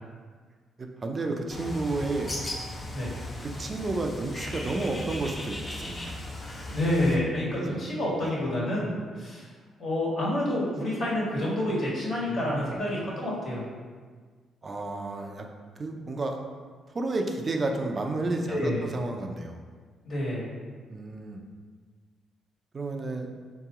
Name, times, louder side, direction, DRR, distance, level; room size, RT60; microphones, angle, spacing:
voice 1, 0.8-2.3 3.4-6.2 7.6-7.8 8.2-8.3 12.3-12.8 14.6-15.5 15.8-16.4 16.9-19.6 20.9-21.4 22.7-23.3, right 2 dB, 35° right, 3 dB, 0.5 m, -31 dB
Bird, 1.5-7.2, left 1 dB, 35° left, 0.6 m, -37 dB
voice 2, 6.7-8.9 9.2-9.5 9.8-13.6 18.5-18.8 20.0-20.5, left 1 dB, 60° left, -5 dB, 1.4 m, -28 dB
3.8 x 2.9 x 3.6 m, 1.6 s
cardioid pair, 90°, 0 cm